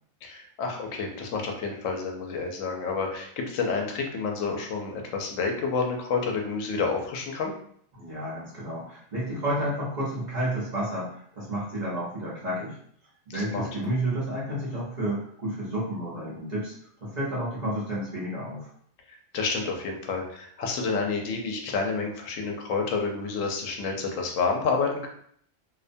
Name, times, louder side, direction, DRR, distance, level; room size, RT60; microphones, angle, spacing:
voice 1, 0.2-7.5 13.3-13.7 19.3-25.1, left 4 dB, 85° left, 2 dB, 0.9 m, -29 dB
voice 2, 7.9-12.8 13.3-16.7 17.0-18.7, right 1 dB, 40° right, -7 dB, 0.8 m, -31 dB
2.6 x 2.1 x 2.6 m, 0.64 s
omnidirectional pair, 1.3 m